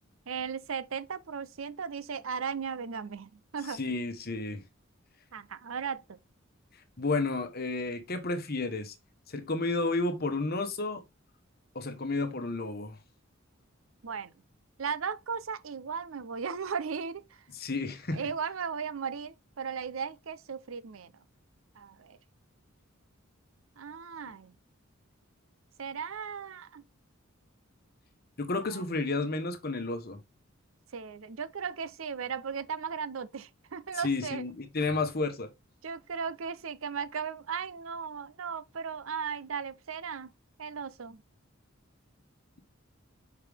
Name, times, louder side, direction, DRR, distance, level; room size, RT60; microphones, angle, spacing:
voice 1, 0.3-3.8 5.3-6.2 14.0-14.3 14.8-17.4 18.1-21.1 21.8-22.2 23.8-24.5 25.8-26.8 28.7-28.8 30.9-34.4 35.8-40.3 40.6-41.2, right 6 dB, 75° right, 0.6 m, -36 dB
voice 2, 3.7-4.6 7.0-8.9 9.3-11.0 11.7-13.0 17.5-18.3 28.4-30.2 33.9-35.5, left 3 dB, 50° left, 1.1 m, -31 dB
6.6 x 4.8 x 3.5 m
head